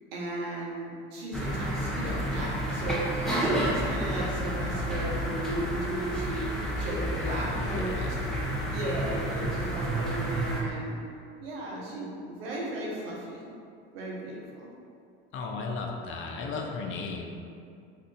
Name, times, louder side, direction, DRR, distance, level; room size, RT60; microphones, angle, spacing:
voice 1, 0.1-3.1 3.4-8.2 8.7-11.0 11.4-13.5 13.9-14.7, right 1 dB, 80° right, -3 dB, 0.8 m, -35 dB
sound 1, 1.3-10.6, right 1 dB, ahead, 0.6 m, -30 dB
voice 2, 7.1-8.1 15.3-17.3, left 4 dB, 45° left, 1 dB, 0.5 m, -35 dB
2.8 x 2.4 x 3.7 m, 2.4 s
supercardioid pair, 90°, 30 cm